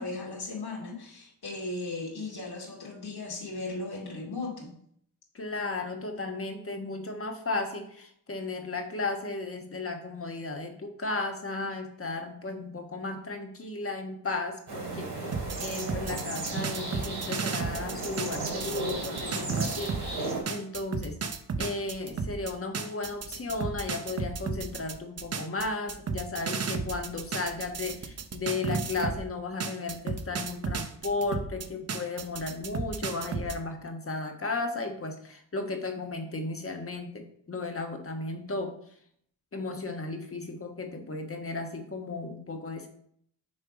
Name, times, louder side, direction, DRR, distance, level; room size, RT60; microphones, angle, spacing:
voice 1, 0.0-4.7, left 2 dB, 60° left, -2 dB, 2.4 m, -37 dB
voice 2, 5.3-15.1 15.6-19.9 20.5-21.2 21.6-38.7 39.5-42.9, left 3 dB, 30° left, 4 dB, 1.3 m, -34 dB
sound 1, 14.7-20.4, right 3 dB, 60° right, 2.7 m, -35 dB
sound 2, 15.3-20.1 20.5-29.2 29.6-33.6, right 5 dB, 35° right, 0.7 m, -34 dB
6.5 x 3.6 x 4.9 m, 0.65 s
cardioid pair, 65°, 43 cm